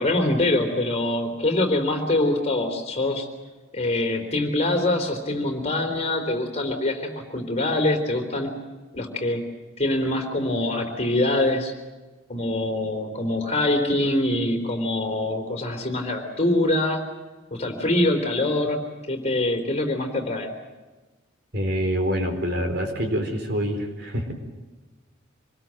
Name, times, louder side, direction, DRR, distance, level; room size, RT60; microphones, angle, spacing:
voice 1, 0.0-3.3 3.7-8.5 8.9-9.4 9.8-11.7 12.3-17.0 17.5-18.8 19.1-20.5, left 1 dB, 30° left, 4 dB, 3.6 m, -24 dB
voice 2, 21.5-24.3, equal, 50° right, 4 dB, 4.4 m, -26 dB
26.0 x 20.5 x 7.7 m, 1.2 s
head